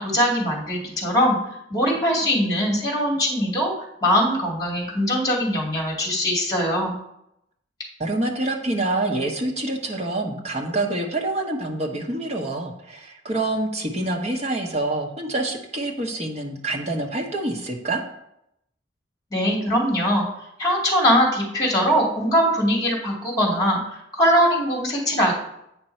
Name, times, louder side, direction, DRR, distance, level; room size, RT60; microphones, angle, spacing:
voice 1, 0.0-1.4 1.7-3.7 4.0-6.9 19.3-20.2 20.6-23.8 24.1-25.3, equal, 20° left, -1 dB, 2.1 m, -21 dB
voice 2, 8.0-18.0, right 2 dB, 35° right, 1 dB, 1.1 m, -26 dB
8.5 x 5.2 x 4.4 m, 0.80 s
head